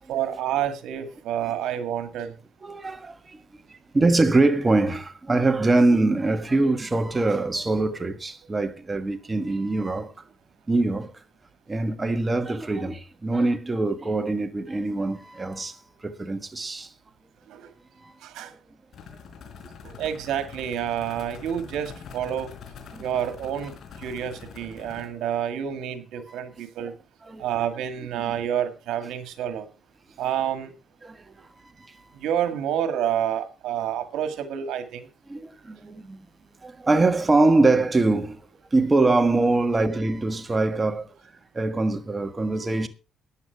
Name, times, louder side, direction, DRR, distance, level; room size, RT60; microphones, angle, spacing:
voice 1, 0.1-2.4 17.5-17.7 18.2-18.5 19.8-22.5 23.0-27.0 27.4-29.7 30.2-30.7 32.1-35.1, right 9 dB, 85° right, 1.9 m, -29 dB
voice 2, 2.6-3.4 3.7-10.1 10.7-11.2 11.7-16.9 18.0-18.1 22.9-23.0 26.3-26.4 27.2-27.5 28.3-28.4 31.0-31.3 31.8-32.1 35.3-36.3 36.6-41.1 41.5-42.9, right 2 dB, 25° right, 1.5 m, -23 dB
sound 1, 18.9-25.1, left 6 dB, 65° left, 4.5 m, -44 dB
14.0 x 10.0 x 4.7 m
cardioid pair, 90°, 0 cm